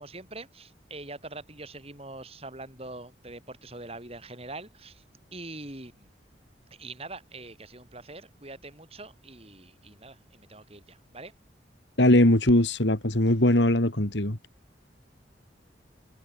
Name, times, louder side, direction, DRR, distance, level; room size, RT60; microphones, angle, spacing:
voice 1, 0.0-5.0 5.3-6.1 6.7-11.3, right 2 dB, 35° right, 7.3 m, -43 dB
voice 2, 12.0-14.4, left 1 dB, 75° left, 2.8 m, -21 dB
head